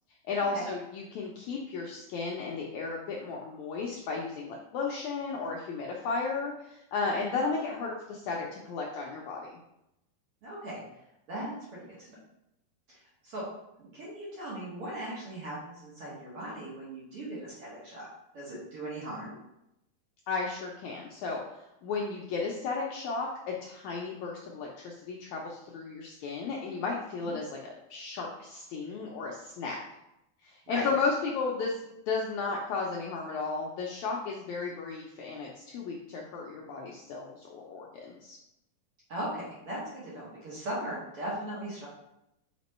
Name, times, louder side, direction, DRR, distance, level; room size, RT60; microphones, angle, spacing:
voice 1, 0.3-9.5 20.3-23.3 23.6-29.8 30.4-31.8 32.1-38.4, left 4 dB, 80° left, -1 dB, 1.7 m, -34 dB
voice 2, 10.4-10.8 11.3-12.2 12.9-13.4 13.8-18.1 18.3-19.3 27.2-27.3 30.7-30.9 39.1-41.9, right 1 dB, 55° right, -7 dB, 1.8 m, -38 dB
5.1 x 4.4 x 4.2 m, 0.86 s
omnidirectional pair, 4.0 m